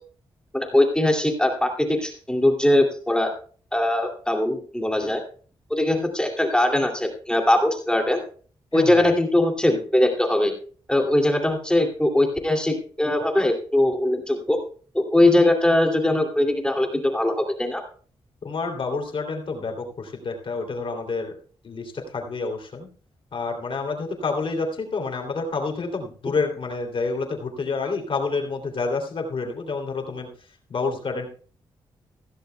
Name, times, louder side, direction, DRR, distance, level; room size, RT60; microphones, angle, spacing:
voice 1, 0.5-3.3 3.7-5.2 5.7-8.2 8.7-10.5 10.9-14.6 14.9-17.8, left 1 dB, 10° left, 2 dB, 2.5 m, -21 dB
voice 2, 8.7-9.1 18.4-21.4 21.6-22.9 23.3-30.3 30.7-31.3, left 4 dB, 55° left, 2 dB, 2.9 m, -28 dB
15.5 x 15.0 x 2.2 m, 0.43 s
cardioid pair, 60°, 11 cm